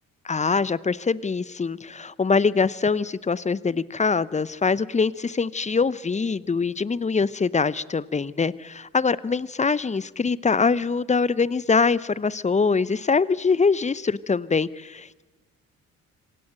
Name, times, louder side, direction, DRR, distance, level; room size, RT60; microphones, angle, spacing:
voice 1, 0.2-15.2, left 4 dB, 15° left, 21 dB, 0.7 m, -23 dB
26.0 x 17.0 x 7.9 m, 1.2 s
hypercardioid pair, 45°, 40 cm